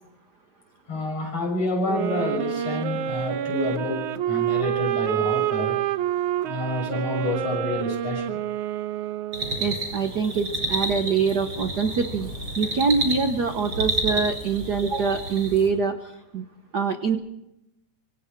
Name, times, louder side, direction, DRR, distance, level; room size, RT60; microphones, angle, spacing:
voice 1, 0.9-5.8 6.4-8.4, left 2 dB, 55° left, 1 dB, 7.7 m, -28 dB
sound 1, 1.8-9.7, right 12 dB, 85° right, 2.4 m, -27 dB
sound 2, 9.3-15.7, right 1 dB, 40° right, 6.0 m, -30 dB
voice 2, 9.6-12.3 12.6-16.4 16.7-17.2, right 5 dB, 65° right, 8 dB, 1.0 m, -24 dB
25.5 x 25.5 x 4.6 m, 0.86 s
omnidirectional pair, 3.4 m